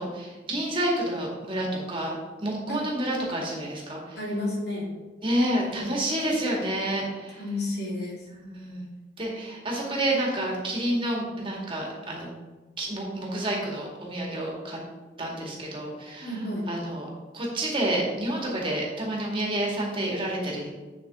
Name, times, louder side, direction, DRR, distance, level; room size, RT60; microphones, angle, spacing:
voice 1, 0.0-4.2 5.2-7.4 8.3-8.8 9.2-12.3 12.8-14.8 15.2-16.4 16.7-17.1 17.3-20.7, right 1 dB, 30° right, -2 dB, 2.0 m, -29 dB
voice 2, 4.2-4.9 7.4-8.2 16.2-16.7, left 1 dB, 65° left, -3 dB, 2.6 m, -31 dB
8.3 x 7.3 x 3.7 m, 1.2 s
head